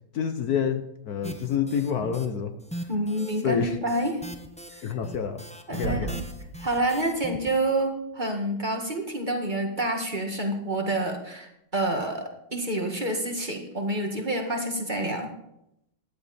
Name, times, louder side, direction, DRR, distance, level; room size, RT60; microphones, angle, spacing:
voice 1, 0.1-2.5 3.4-3.8 4.8-5.4 5.7-6.2, left 7 dB, 60° left, 1.3 m, -28 dB
sound 1, 1.2-2.3 2.6-7.5, right 1 dB, 5° left, 0.8 m, -40 dB
voice 2, 2.9-4.2 4.7-5.0 5.7-6.2 6.6-15.3, right 1 dB, 25° right, 1.9 m, -28 dB
sound 2, 5.8-7.8 8.2-8.3, right 1 dB, 75° right, 4.5 m, -36 dB
16.0 x 11.0 x 4.3 m
omnidirectional pair, 1.9 m